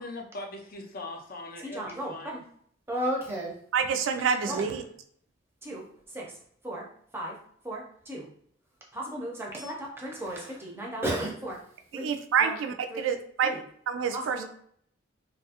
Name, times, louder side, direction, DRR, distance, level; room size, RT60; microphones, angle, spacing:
voice 1, 0.0-2.4, left 2 dB, 45° left, 3 dB, 0.4 m, -40 dB
voice 2, 1.7-2.4 2.9-3.6 4.5-4.7 5.6-5.8 6.1-6.2 6.6-6.8 7.1-7.3 7.6-8.3 8.9-11.6 11.9-12.1 12.4-12.6 12.9-13.1 13.4-13.6 14.1-14.5, right 1 dB, 10° right, -2 dB, 0.5 m, -34 dB
voice 3, 3.7-4.8 11.9-14.5, right 6 dB, 75° right, 7 dB, 0.3 m, -28 dB
2.7 x 2.3 x 2.8 m, 0.64 s
head